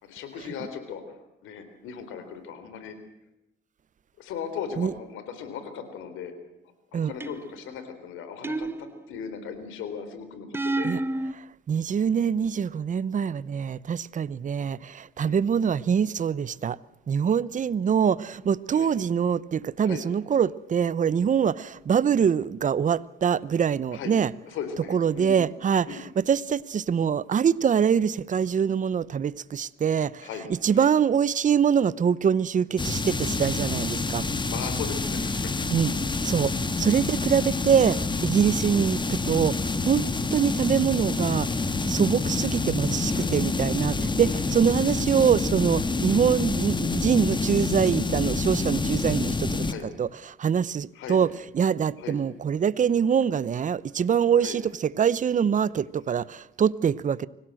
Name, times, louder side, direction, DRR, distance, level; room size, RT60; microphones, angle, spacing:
voice 1, 0.0-2.9 4.2-6.3 6.9-10.9 15.2-15.4 18.7-18.9 19.8-20.1 23.9-24.2 24.5-25.4 25.8-26.1 30.2-30.5 30.7-30.9 34.5-35.6 35.9-36.1 43.1-43.3 49.6-49.9 50.9-51.2 52.0-52.2 54.4-54.6, left 7 dB, 90° left, 3.9 m, -38 dB
sound 1, 7.2-7.7 8.4-9.3 10.5-11.3, right 2 dB, 10° right, 0.8 m, -29 dB
voice 2, 11.3-16.8 17.1-24.3 24.9-34.2 35.7-35.9 36.2-57.3, right 7 dB, 40° right, 0.8 m, -24 dB
sound 2, 32.8-49.7, left 3 dB, 25° left, 1.6 m, -27 dB
25.0 x 17.0 x 7.8 m
cardioid pair, 90°, 20 cm